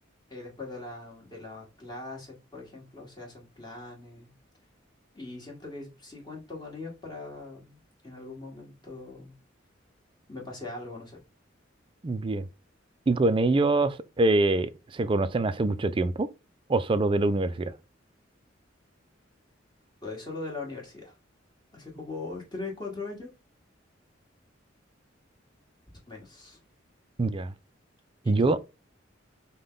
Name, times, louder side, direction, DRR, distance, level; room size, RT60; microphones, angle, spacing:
voice 1, 0.3-4.3 5.1-9.3 10.3-11.2 20.0-21.1 21.7-23.3 26.1-26.6 28.2-28.7, left 3 dB, 20° left, 1.6 m, -41 dB
voice 2, 12.0-12.5 13.1-16.3 16.7-17.7 27.2-27.5 28.3-28.6, right 2 dB, 25° right, 0.3 m, -24 dB
5.2 x 2.2 x 3.8 m
head